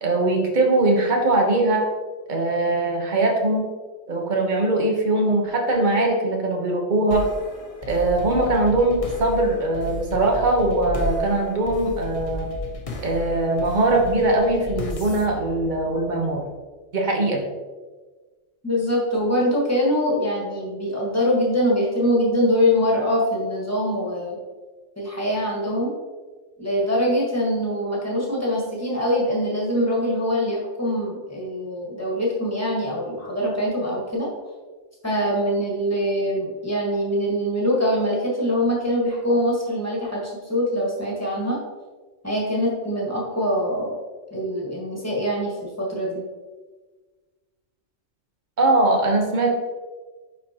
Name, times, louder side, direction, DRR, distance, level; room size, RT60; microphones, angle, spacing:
voice 1, 0.0-1.9 2.3-3.7 4.1-7.3 7.9-12.5 13.0-16.4 16.9-17.4 48.6-49.5, right 2 dB, 40° right, 1 dB, 1.2 m, -21 dB
sound 1, 7.1-16.5, left 1 dB, 35° left, 0.7 m, -34 dB
voice 2, 18.6-24.4 25.0-26.0 26.6-34.3 35.0-41.6 42.2-43.9 44.3-46.2, equal, 15° left, -4 dB, 1.7 m, -23 dB
9.9 x 4.2 x 2.9 m, 1.3 s
omnidirectional pair, 1.2 m